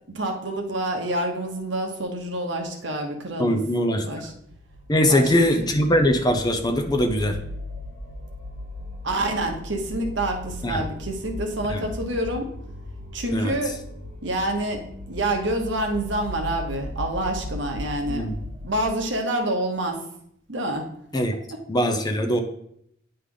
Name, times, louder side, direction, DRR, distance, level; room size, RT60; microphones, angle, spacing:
voice 1, 0.1-3.6 4.0-4.3 5.1-5.7 9.0-12.5 13.1-13.8 14.2-18.3 18.6-20.0 20.5-20.9, right 1 dB, 60° right, 3 dB, 1.1 m, -27 dB
voice 2, 3.4-4.1 4.9-7.4 10.6-10.8 11.7-11.8 13.3-13.5 18.1-18.3 21.1-21.3 21.7-22.4, equal, 20° left, 5 dB, 0.5 m, -21 dB
sound 1, 4.3-18.9, left 1 dB, 40° right, 1.5 m, -37 dB
9.6 x 3.3 x 3.8 m, 0.71 s
head